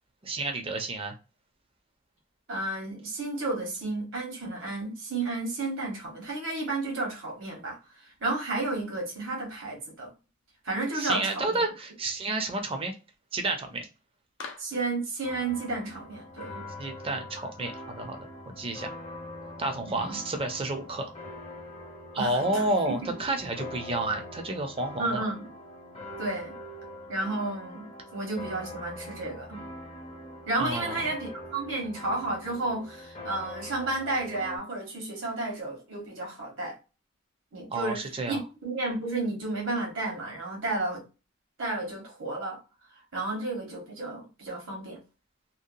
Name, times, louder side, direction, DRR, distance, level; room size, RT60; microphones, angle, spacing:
voice 1, 0.2-1.1 10.9-12.9 13.3-13.9 16.8-19.0 19.6-21.1 22.1-25.2 30.6-31.1 37.7-38.4, right 2 dB, 30° right, 0.5 m, -30 dB
voice 2, 2.5-7.8 8.2-10.1 10.6-11.6 14.6-16.6 18.6-18.7 19.9-20.2 22.2-22.4 22.9-23.0 25.0-25.4 26.2-26.5 27.1-29.6 30.5-36.8 37.5-41.0 41.6-42.6 43.1-45.0, right 2 dB, 75° right, 1.3 m, -32 dB
Clapping, 11.1-11.4 14.4-14.8, left 4 dB, 70° left, 0.5 m, -42 dB
sound 1, 15.2-34.6, left 1 dB, 30° left, 0.6 m, -43 dB
2.8 x 2.1 x 2.5 m
head